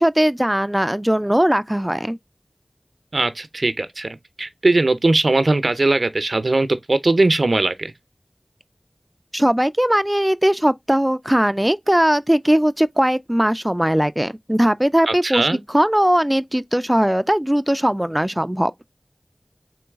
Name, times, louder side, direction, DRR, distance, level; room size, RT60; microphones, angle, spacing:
voice 1, 0.0-2.2 9.3-18.7, equal, 15° right, 0.3 m, -19 dB
voice 2, 3.1-4.1 4.4-7.9 15.1-15.6, right 2 dB, 80° right, 0.5 m, -19 dB
3.9 x 3.1 x 3.4 m
wide cardioid pair, 40°, 0 cm